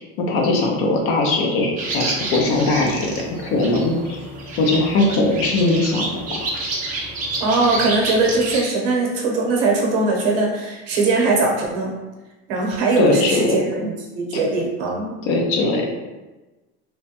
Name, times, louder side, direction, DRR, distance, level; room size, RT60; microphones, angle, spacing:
voice 1, 0.2-4.2 4.6-6.1 13.0-13.6 14.3-14.4 15.2-15.9, left 2 dB, 50° left, 1 dB, 0.5 m, -20 dB
sound 1, 1.8-8.6, right 2 dB, 30° right, 0.4 m, -29 dB
voice 2, 7.4-11.9 12.5-15.1, right 3 dB, 65° right, -1 dB, 0.9 m, -20 dB
3.0 x 2.2 x 2.8 m, 1.1 s
cardioid pair, 165°, 30 cm